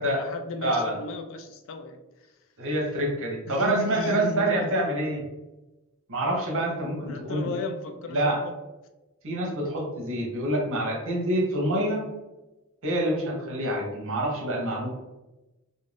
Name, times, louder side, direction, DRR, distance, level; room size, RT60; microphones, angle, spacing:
voice 1, 0.0-2.0 3.5-4.8 7.1-8.5, left 3 dB, 60° left, 0.3 m, -34 dB
voice 2, 0.6-1.0 2.6-5.2 6.1-7.5 8.1-8.4 9.2-12.1 12.8-14.9, right 1 dB, 60° right, 0.8 m, -27 dB
2.5 x 2.1 x 3.1 m
head